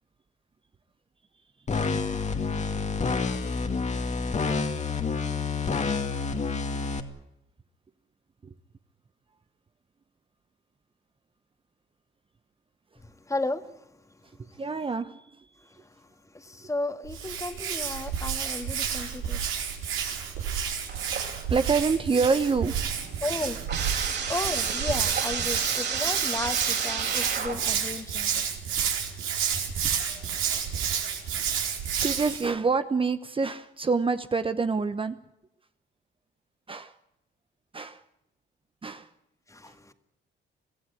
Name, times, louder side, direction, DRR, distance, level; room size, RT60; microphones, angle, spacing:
sound 1, 1.7-7.0, left 4 dB, 35° left, 2.2 m, -28 dB
voice 1, 13.0-13.9 15.8-15.9 16.3-19.7 20.4-20.5 23.2-23.6 24.1-28.5 29.8-29.9 39.5-39.9, left 2 dB, 15° left, 2.0 m, -34 dB
voice 2, 14.6-15.4 21.5-22.7 23.1-23.2 30.1-30.3 32.0-35.2 36.7-36.9 37.7-38.0 38.8-39.1, right 4 dB, 25° right, 1.0 m, -27 dB
Hands, 17.1-32.5, right 8 dB, 85° right, 4.8 m, -30 dB
sound 2, 20.9-21.7 22.0-27.9, right 6 dB, 55° right, 5.9 m, -32 dB
24.5 x 15.0 x 10.0 m
cardioid pair, 90°, 20 cm